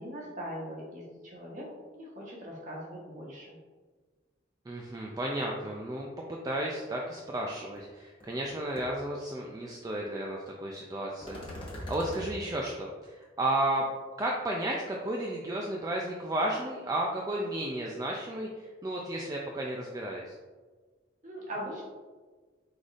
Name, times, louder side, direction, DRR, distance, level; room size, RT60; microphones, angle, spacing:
voice 1, 0.0-1.6 1.9-3.6 21.2-21.8, equal, 40° right, -4 dB, 1.2 m, -40 dB
voice 2, 4.7-13.9 14.2-20.4, right 1 dB, 20° right, -1 dB, 0.3 m, -33 dB
sound 1, 7.8-7.9 8.2-8.5 8.8-8.9 11.2-12.3, left 1 dB, 25° left, 1.1 m, -40 dB
4.9 x 4.0 x 2.5 m, 1.4 s
head